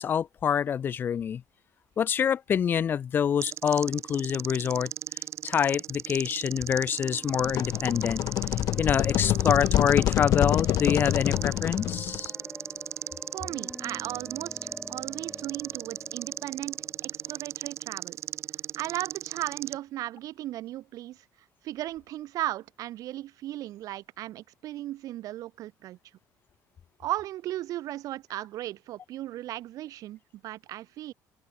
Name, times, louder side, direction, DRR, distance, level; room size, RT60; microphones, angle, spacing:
voice 1, 0.0-1.4 2.0-4.9 5.4-8.2 8.8-12.3, left 8 dB, 30° left, 0.4 m, -26 dB
sound 1, 3.4-19.8, right 10 dB, 40° right, 0.8 m, -37 dB
sound 2, 6.9-18.6, equal, ahead, 3.1 m, -47 dB
sound 3, 7.4-12.3, left 14 dB, 50° left, 1.7 m, -26 dB
voice 2, 13.3-18.2 18.8-21.2 21.6-26.0 27.0-31.1, right 14 dB, 55° right, 1.2 m, -36 dB
open air
cardioid pair, 165°, 7 cm